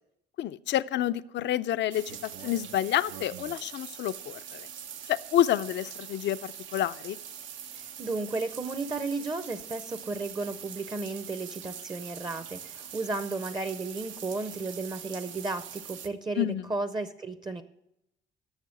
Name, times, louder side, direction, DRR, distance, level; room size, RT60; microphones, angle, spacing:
voice 1, 0.4-2.2 2.4-4.7 5.1-7.2 16.4-16.7, left 12 dB, 65° left, 13 dB, 0.5 m, -28 dB
sound 1, 1.9-16.1, right 8 dB, 80° right, 0.8 m, -43 dB
voice 2, 7.7-17.6, right 3 dB, 20° right, 11 dB, 0.6 m, -34 dB
11.5 x 6.8 x 6.4 m, 0.82 s
cardioid pair, 110°, 20 cm